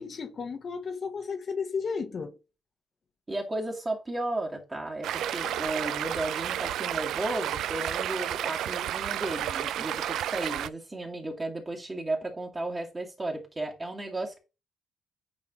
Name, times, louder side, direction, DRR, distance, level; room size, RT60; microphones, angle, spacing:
voice 1, 0.0-2.4, left 5 dB, 45° left, 1.0 m, -33 dB
voice 2, 3.3-14.4, right 2 dB, 25° right, 2.4 m, -34 dB
Stream, 5.0-10.7, right 11 dB, 80° right, 0.4 m, -31 dB
9.2 x 4.3 x 3.1 m
cardioid pair, 90°, 0 cm